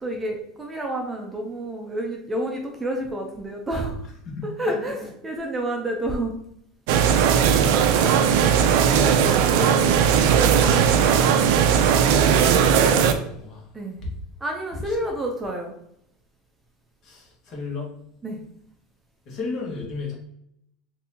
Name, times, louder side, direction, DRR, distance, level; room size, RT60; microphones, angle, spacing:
voice 1, 0.0-4.1 4.6-6.3 9.0-9.2 13.7-14.0 14.4-15.7 18.2-18.4, right 1 dB, 15° right, 1 dB, 0.5 m, -30 dB
voice 2, 4.2-4.8 7.7-8.0 12.8-13.7 14.0-14.1 14.8-15.0 17.0-18.0 19.2-20.1, left 4 dB, 40° left, -1 dB, 1.3 m, -34 dB
sound 1, 6.9-13.1, right 7 dB, 70° right, 0.4 m, -18 dB
4.0 x 2.6 x 2.8 m, 0.72 s
supercardioid pair, 145°, 0 cm